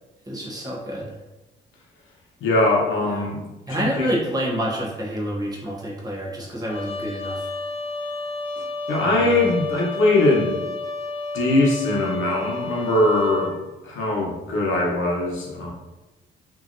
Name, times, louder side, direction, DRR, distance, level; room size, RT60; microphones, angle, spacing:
voice 1, 0.3-1.1 3.0-3.3 3.7-7.5 9.0-9.5, equal, 20° right, -4 dB, 0.9 m, -28 dB
voice 2, 2.4-4.1 8.9-10.6 11.3-13.5 13.8-15.7, left 2 dB, 80° left, -2 dB, 0.9 m, -21 dB
Trumpet, 6.7-13.5, left 3 dB, 30° left, 0.7 m, -31 dB
3.0 x 2.6 x 2.6 m, 1.0 s
cardioid pair, 90°, 20 cm